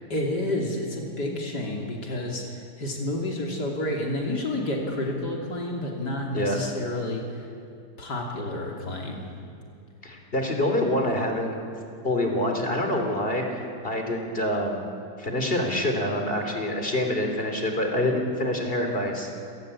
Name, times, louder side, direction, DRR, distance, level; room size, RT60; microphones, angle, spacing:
voice 1, 0.1-7.5 8.0-9.3, left 1 dB, 85° left, 0 dB, 3.6 m, -30 dB
voice 2, 10.0-11.6 12.0-14.9 15.2-19.4, left 1 dB, 35° left, 3 dB, 3.6 m, -26 dB
28.5 x 18.0 x 8.5 m, 2.5 s
omnidirectional pair, 1.8 m